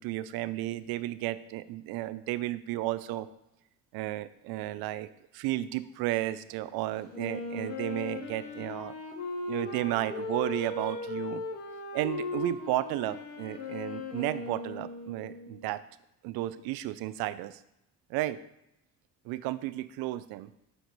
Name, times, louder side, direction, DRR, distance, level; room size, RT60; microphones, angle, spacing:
voice 1, 0.0-3.3 3.9-5.1 5.3-9.0 9.5-11.4 11.9-15.8 16.2-17.6 18.1-18.4 19.3-20.5, right 15 dB, 80° right, 15 dB, 0.5 m, -33 dB
Wind instrument woodwind instrument, 7.1-15.7, left 3 dB, 90° left, 1.0 m, -38 dB
8.0 x 4.6 x 4.0 m, 0.84 s
supercardioid pair, 65°, 37 cm